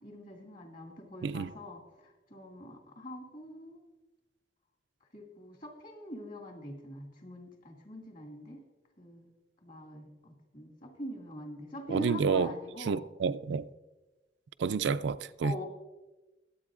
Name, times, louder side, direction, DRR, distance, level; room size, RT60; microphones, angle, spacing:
voice 1, 0.0-3.8 5.1-8.6 9.0-9.3 9.6-13.0 14.7-15.0 15.4-15.6, left 1 dB, 50° left, 2.1 m, -44 dB
voice 2, 1.2-1.5 11.9-12.5 12.9-13.7 14.6-15.6, right 5 dB, 75° right, 0.4 m, -29 dB
22.0 x 8.3 x 2.5 m
head